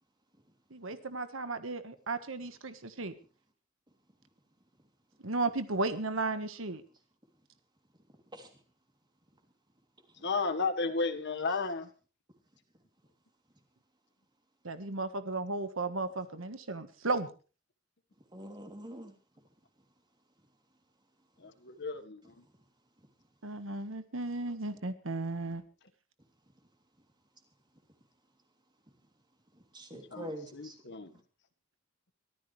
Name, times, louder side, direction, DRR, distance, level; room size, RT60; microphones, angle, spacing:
voice 1, 0.7-3.1 5.2-6.8 14.6-17.3 23.4-25.6, right 3 dB, 85° right, 1.5 m, -34 dB
voice 2, 10.2-11.9 21.4-22.2 30.1-31.1, left 4 dB, 60° left, 1.6 m, -33 dB
voice 3, 18.3-19.1 29.7-30.7, right 1 dB, 20° right, 3.1 m, -44 dB
23.0 x 14.0 x 3.3 m
head